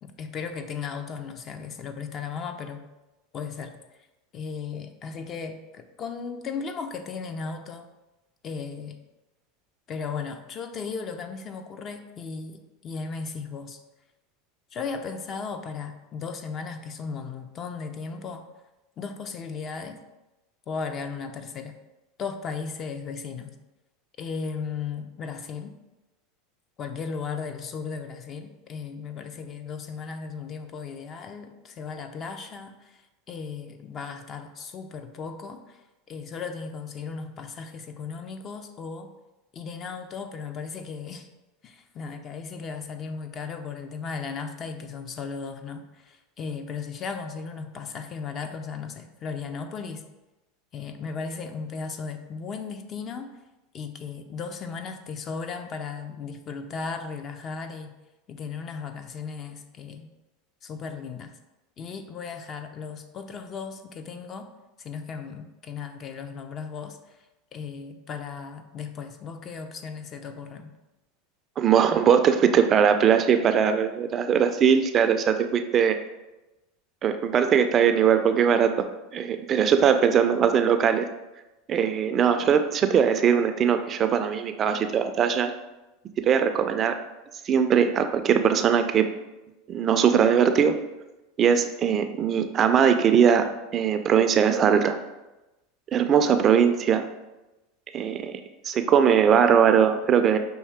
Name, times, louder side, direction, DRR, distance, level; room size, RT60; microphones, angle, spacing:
voice 1, 0.0-2.9 3.3-3.7 4.3-7.9 8.4-9.0 9.9-13.8 14.7-18.4 19.0-20.0 20.7-21.8 22.2-23.6 24.2-25.8 26.8-33.0 33.3-35.8 36.1-39.1 39.5-41.3 41.6-50.0 50.7-53.4 53.7-57.9 58.3-60.1 60.6-61.3 61.8-64.5 64.8-67.0 67.5-70.7, left 5 dB, 35° left, 7 dB, 0.5 m, -36 dB
voice 2, 71.6-76.0 77.0-81.1 81.7-85.5 86.2-87.0 87.5-89.1 89.7-90.8 91.4-95.0 95.9-97.1 97.9-98.3 98.6-100.4, right 7 dB, 35° right, 8 dB, 0.4 m, -21 dB
5.6 x 2.6 x 3.5 m, 1.0 s
hypercardioid pair, 105°, 0 cm